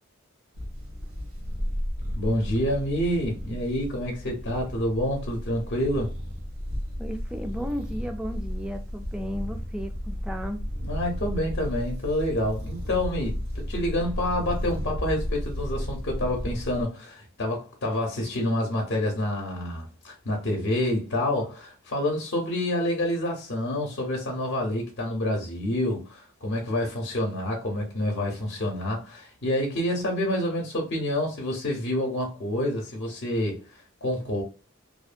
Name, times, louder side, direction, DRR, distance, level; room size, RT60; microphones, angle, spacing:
sound 1, 0.5-16.8, equal, 85° right, 1.0 m, -33 dB
voice 1, 2.2-6.1 10.8-34.4, left 1 dB, 55° left, 0.6 m, -28 dB
voice 2, 7.0-10.6, equal, 5° right, 0.3 m, -34 dB
2.6 x 2.1 x 2.5 m
head